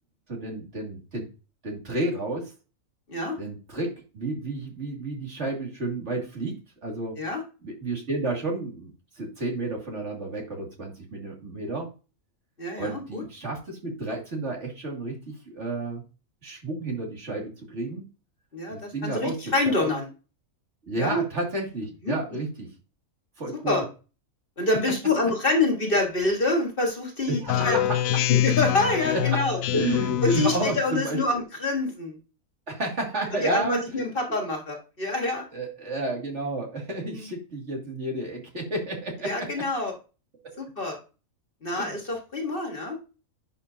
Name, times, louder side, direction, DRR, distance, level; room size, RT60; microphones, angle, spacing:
voice 1, 0.3-1.2 1.6-2.5 3.4-6.5 6.8-7.2 7.6-8.9 9.2-11.9 12.8-16.0 16.4-18.0 18.7-19.4 19.6-20.0 20.8-22.7 23.4-23.8 27.3-28.0 29.1-29.4 29.7-31.2 32.7-33.8 35.5-39.5 41.7-41.9, right 2 dB, 55° right, -1 dB, 2.7 m, -31 dB
voice 2, 12.6-13.2 18.5-20.1 21.0-21.2 22.0-22.1 23.7-23.8 24.6-27.8 28.3-29.6 30.2-32.2 33.3-35.5 37.0-37.3 39.2-39.9 40.6-41.0 41.6-43.0, left 2 dB, 40° left, 2 dB, 1.7 m, -26 dB
Speech synthesizer, 27.5-30.8, left 12 dB, 80° left, 1.0 m, -25 dB
10.5 x 5.3 x 2.7 m, 0.32 s
omnidirectional pair, 1.4 m